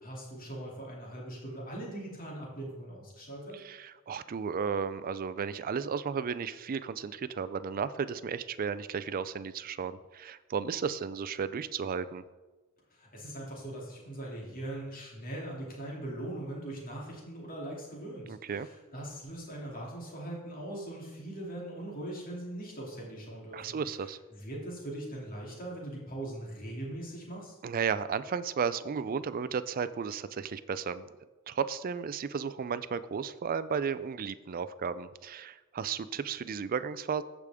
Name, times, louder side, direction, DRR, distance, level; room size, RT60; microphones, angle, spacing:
voice 1, 0.0-3.6 12.9-23.8 24.3-27.6, right 1 dB, 40° left, -3 dB, 2.7 m, -41 dB
voice 2, 3.5-12.2 18.3-18.7 23.5-24.2 27.6-31.1 31.5-37.2, right 6 dB, 40° right, 14 dB, 0.4 m, -34 dB
15.0 x 5.0 x 3.6 m, 1.2 s
head